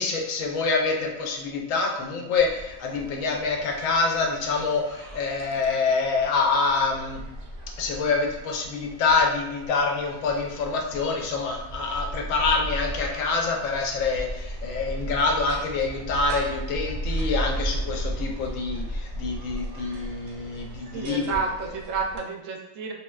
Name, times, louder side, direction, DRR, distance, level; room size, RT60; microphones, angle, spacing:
voice 1, 0.0-7.2 7.8-21.3, left 4 dB, 90° left, 1 dB, 1.0 m, -26 dB
sound 1, 2.4-22.2, right 1 dB, 60° right, 0.6 m, -36 dB
voice 2, 20.9-22.9, right 5 dB, 80° right, 1 dB, 0.9 m, -30 dB
3.1 x 2.7 x 2.2 m, 0.87 s
omnidirectional pair, 1.3 m